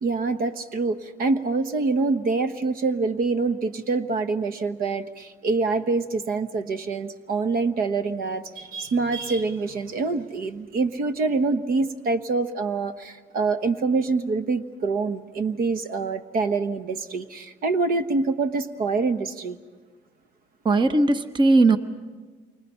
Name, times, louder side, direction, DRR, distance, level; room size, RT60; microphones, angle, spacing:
voice 1, 0.0-19.6, right 3 dB, 60° right, 10 dB, 1.2 m, -25 dB
voice 2, 20.6-21.8, right 2 dB, 25° right, 10 dB, 1.0 m, -18 dB
28.5 x 25.0 x 5.6 m, 1.4 s
cardioid pair, 110°, 17 cm